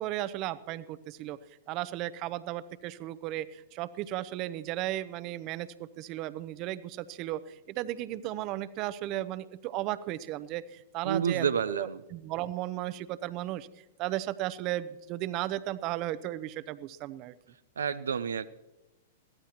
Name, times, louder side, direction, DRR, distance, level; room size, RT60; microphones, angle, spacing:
voice 1, 0.0-1.4 1.7-13.7 14.0-17.3, right 14 dB, 45° right, 15 dB, 0.7 m, -35 dB
voice 2, 11.0-12.0 17.8-18.5, right 7 dB, 85° right, 11 dB, 0.5 m, -29 dB
22.0 x 15.5 x 3.0 m, 1.0 s
hypercardioid pair, 110°, 0 cm